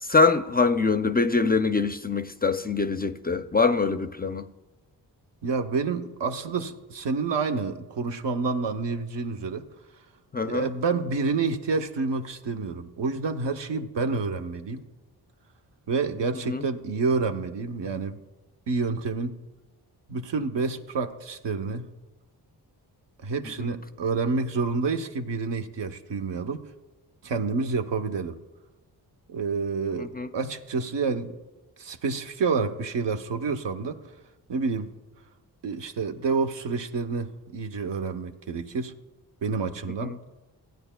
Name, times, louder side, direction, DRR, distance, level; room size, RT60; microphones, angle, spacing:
voice 1, 0.0-4.5 10.3-10.7 16.4-16.7 23.6-23.7 30.0-30.3 40.0-40.2, left 4 dB, 25° left, 0.4 m, -24 dB
voice 2, 5.4-9.6 10.4-14.8 15.9-18.2 18.7-19.4 20.1-21.9 23.2-26.6 27.2-28.4 29.3-31.4 31.8-34.0 34.5-34.9 35.6-38.9 39.4-40.2, right 4 dB, 75° right, 0.8 m, -28 dB
16.0 x 9.1 x 2.2 m
cardioid pair, 55°, 44 cm